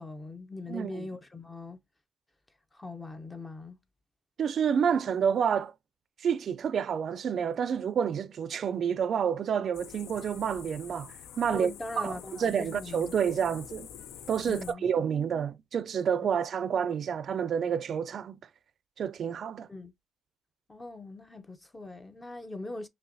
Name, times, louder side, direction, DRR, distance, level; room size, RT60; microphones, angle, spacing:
voice 1, 0.0-1.8 2.7-3.8 11.5-13.2 14.5-14.8 16.2-16.3 19.7-19.9 20.7-22.9, left 2 dB, 20° left, 0.6 m, -41 dB
voice 2, 0.7-1.1 4.4-5.7 6.2-11.7 12.0-13.9 14.3-18.4 19.0-19.7, right 7 dB, 60° right, 0.3 m, -29 dB
sound 1, 9.7-14.7, left 9 dB, 85° left, 0.5 m, -47 dB
5.5 x 2.1 x 2.6 m
cardioid pair, 90°, 0 cm